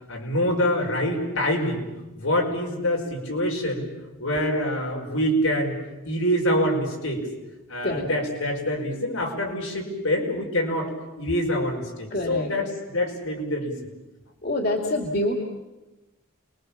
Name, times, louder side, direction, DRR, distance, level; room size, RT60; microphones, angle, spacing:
voice 1, 0.1-1.9 2.2-3.9 4.2-5.8 6.1-7.2 7.7-10.9 11.2-13.8, equal, 85° left, 0 dB, 5.4 m, -25 dB
voice 2, 12.1-12.5 14.4-15.3, left 1 dB, 45° left, 2 dB, 2.8 m, -25 dB
29.5 x 22.0 x 7.3 m, 1.1 s
head